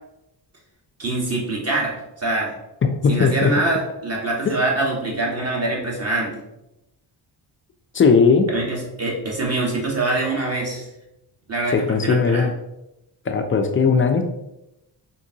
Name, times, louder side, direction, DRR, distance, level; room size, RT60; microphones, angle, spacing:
voice 1, 1.0-2.5 3.1-6.3 8.5-10.9 11.5-12.5, right 2 dB, 30° right, -3 dB, 1.4 m, -24 dB
voice 2, 3.0-3.5 4.5-4.6 7.9-8.5 11.7-12.5 13.3-14.2, left 5 dB, 30° left, 6 dB, 0.4 m, -17 dB
3.6 x 2.6 x 2.8 m, 0.91 s
supercardioid pair, 60°, 47 cm